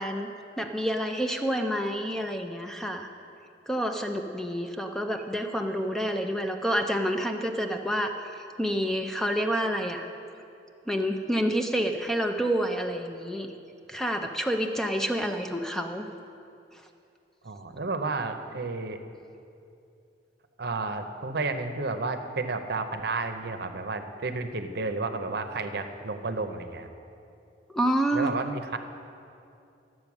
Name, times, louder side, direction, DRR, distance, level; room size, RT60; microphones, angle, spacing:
voice 1, 0.0-3.1 3.7-8.1 8.6-10.1 10.9-13.5 13.9-16.0 27.7-28.3, equal, 5° left, 4 dB, 0.5 m, -28 dB
voice 2, 17.4-19.0 20.6-26.9 28.1-28.8, right 3 dB, 60° right, 7 dB, 0.7 m, -31 dB
12.0 x 7.7 x 6.1 m, 2.6 s
head